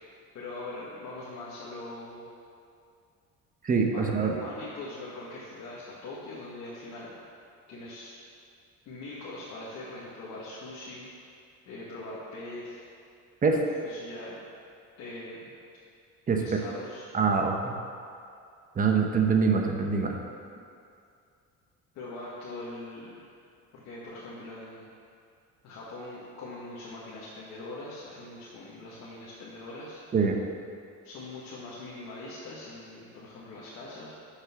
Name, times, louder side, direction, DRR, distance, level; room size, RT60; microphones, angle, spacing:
voice 1, 0.3-2.3 3.9-7.1 7.7-8.1 8.8-11.1 11.6-12.9 13.8-14.4 15.0-15.5 16.4-17.1 21.9-23.2 23.7-24.9 25.6-30.0 31.0-34.1, left 2 dB, 60° left, -8 dB, 1.7 m, -42 dB
voice 2, 3.6-4.4 13.4-13.6 16.3-16.6 17.1-17.7 18.8-20.2 30.1-30.4, right 5 dB, 25° right, 2 dB, 1.0 m, -24 dB
11.5 x 6.7 x 3.7 m, 2.4 s
cardioid pair, 135°, 31 cm